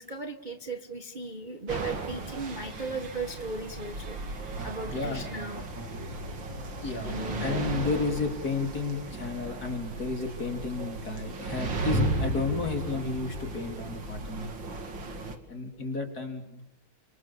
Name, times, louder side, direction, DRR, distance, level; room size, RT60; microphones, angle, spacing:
voice 1, 0.0-4.2 4.6-5.6 7.0-7.7, right 3 dB, 25° right, 6 dB, 1.5 m, -37 dB
sound 1, 1.7-15.4, right 2 dB, 60° right, 3.2 m, -35 dB
voice 2, 4.9-5.3 6.8-14.5 15.5-16.6, left 4 dB, 45° left, 4 dB, 4.1 m, -32 dB
30.0 x 26.0 x 7.2 m, 0.75 s
omnidirectional pair, 2.4 m